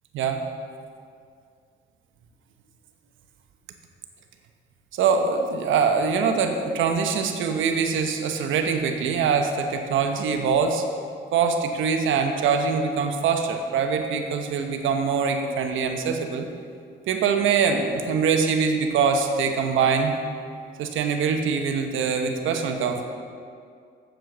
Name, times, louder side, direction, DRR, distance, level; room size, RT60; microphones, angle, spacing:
voice 1, 4.9-10.8 11.3-16.5 17.1-20.1 20.8-23.1, right 5 dB, 80° right, 5 dB, 1.1 m, -23 dB
7.8 x 7.7 x 6.7 m, 2.3 s
cardioid pair, 90°, 20 cm